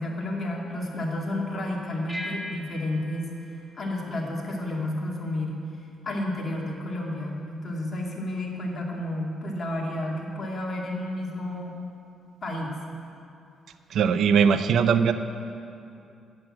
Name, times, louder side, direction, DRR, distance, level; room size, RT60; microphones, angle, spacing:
voice 1, 0.0-3.3 3.7-5.6 6.0-11.8 12.4-12.7 14.5-14.6, left 1 dB, 40° left, -2 dB, 2.3 m, -31 dB
sound 1, 2.1-4.9, equal, 5° right, 1.7 m, -40 dB
voice 2, 13.9-15.1, right 7 dB, 70° right, 11 dB, 0.5 m, -20 dB
8.9 x 7.7 x 8.6 m, 2.6 s
cardioid pair, 90°, 0 cm